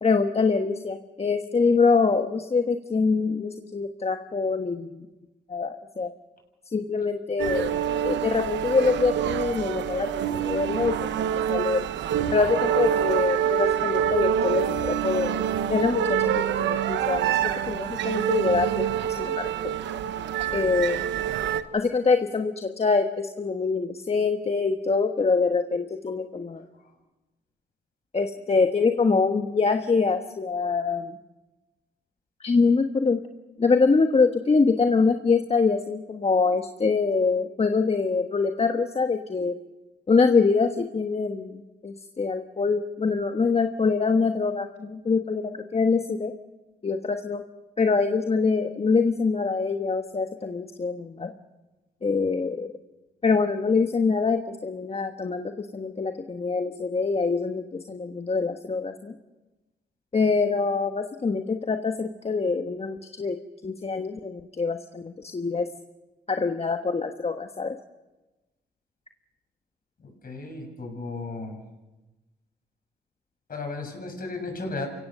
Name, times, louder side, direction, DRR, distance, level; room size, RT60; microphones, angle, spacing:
voice 1, 0.0-5.1 5.5-6.1 6.7-7.7 8.0-11.8 12.3-15.4 15.7-16.3 16.6-17.4 17.7-19.5 20.5-21.1 21.7-26.6 28.1-31.2 32.4-33.2 33.6-39.6 40.1-46.3 46.8-47.4 47.8-51.3 52.0-52.7 53.2-59.1 60.1-63.4 63.6-65.7 66.3-67.8, left 4 dB, 35° left, 6 dB, 1.3 m, -24 dB
sound 1, 7.4-21.6, right 9 dB, 80° right, 1.0 m, -26 dB
voice 2, 70.2-71.5 73.5-74.9, left 3 dB, 55° left, 3 dB, 7.1 m, -34 dB
28.5 x 17.0 x 6.7 m, 1.1 s
cardioid pair, 65°, 18 cm